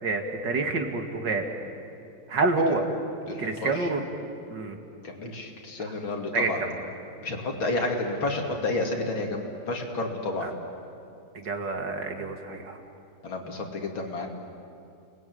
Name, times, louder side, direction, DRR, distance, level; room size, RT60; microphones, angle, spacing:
voice 1, 0.0-1.4 2.3-2.9 3.4-4.0 4.5-4.8 5.8-5.9 6.3-6.7 10.4-10.5 11.3-12.8, right 3 dB, 60° right, 4 dB, 2.9 m, -28 dB
voice 2, 3.3-3.9 5.0-6.6 7.2-10.5 13.2-14.3, left 2 dB, 85° left, 2 dB, 3.6 m, -30 dB
29.5 x 20.5 x 9.6 m, 2.6 s
omnidirectional pair, 2.1 m